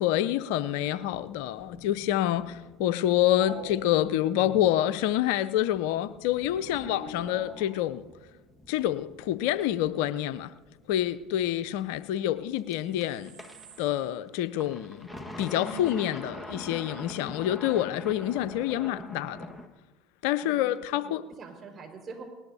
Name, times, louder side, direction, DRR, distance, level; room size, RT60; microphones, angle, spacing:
voice 1, 0.0-8.0 8.7-10.5 10.9-13.4 13.8-15.1 15.4-19.4 20.2-21.2, left 12 dB, 70° left, 13 dB, 0.5 m, -27 dB
sound 1, 0.6-19.7, left 1 dB, 10° left, 1.5 m, -46 dB
sound 2, 3.4-4.6 6.2-8.3 12.5-12.6 12.8-14.1 14.4-14.5 14.8-14.9 15.2-16.2 18.3-18.6, right 1 dB, 75° right, 1.9 m, -45 dB
voice 2, 6.7-7.1 20.4-22.2, right 4 dB, 35° right, 2 dB, 4.8 m, -46 dB
19.5 x 19.0 x 2.8 m, 1.2 s
hypercardioid pair, 75°, 0 cm